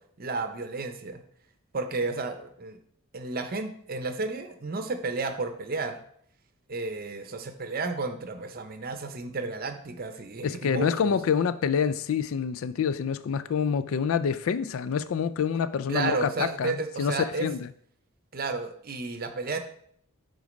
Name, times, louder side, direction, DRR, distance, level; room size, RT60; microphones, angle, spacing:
voice 1, 0.2-1.2 1.7-2.8 3.1-6.0 6.7-11.2 15.9-17.5 18.3-19.6, right 3 dB, 45° right, 0.7 m, -32 dB
voice 2, 10.4-17.7, left 7 dB, 75° left, 0.4 m, -27 dB
8.3 x 3.9 x 5.1 m
head